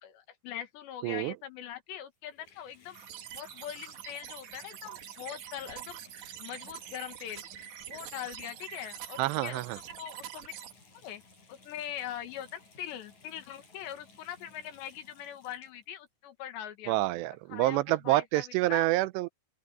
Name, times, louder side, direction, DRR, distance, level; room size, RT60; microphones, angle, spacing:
voice 1, 0.0-3.0 3.3-6.1 6.4-7.4 7.9-10.5 11.0-11.2 11.5-17.0 17.5-18.9, left 10 dB, 80° left, 4.0 m, -42 dB
voice 2, 1.0-1.3 9.2-9.8 16.9-19.3, right 18 dB, 85° right, 2.8 m, -27 dB
Water tap faucet / Bathtub (filling or washing), 2.0-16.1 16.8-16.9, left 3 dB, 40° left, 9.5 m, -59 dB
sound 1, 2.9-10.7, right 11 dB, 65° right, 3.1 m, -45 dB
open air
omnidirectional pair, 4.9 m